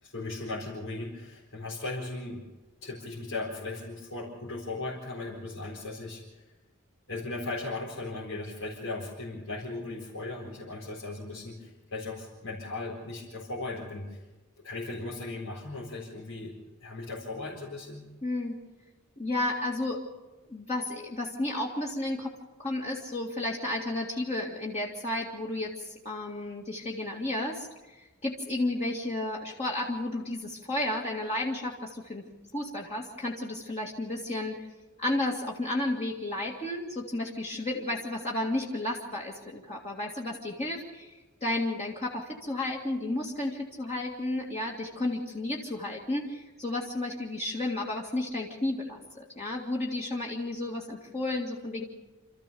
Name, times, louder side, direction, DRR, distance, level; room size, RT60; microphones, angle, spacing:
voice 1, 0.0-2.4 2.8-6.4 7.1-14.2 14.6-18.1, left 2 dB, 85° left, -6 dB, 4.3 m, -37 dB
voice 2, 18.2-18.5 19.2-20.0 20.5-22.3 22.6-32.2 32.5-34.6 35.0-51.8, left 1 dB, 35° left, -2 dB, 2.1 m, -32 dB
27.5 x 14.0 x 6.9 m, 1.1 s
head